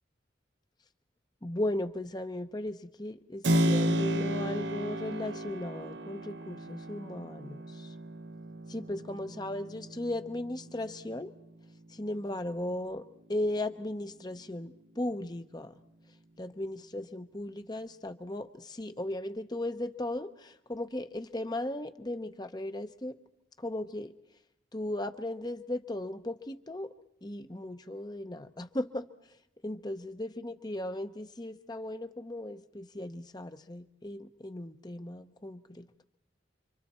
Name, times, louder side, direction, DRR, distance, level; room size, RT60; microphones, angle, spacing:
voice 1, 1.4-7.9 8.7-11.3 11.9-15.7 16.4-23.1 23.6-24.1 24.7-26.9 27.2-29.0 29.6-35.9, left 1 dB, 20° left, 9 dB, 0.8 m, -36 dB
Keyboard (musical), 3.4-12.0, right 1 dB, 65° right, 0.8 m, -33 dB
29.5 x 25.0 x 4.3 m, 0.81 s
head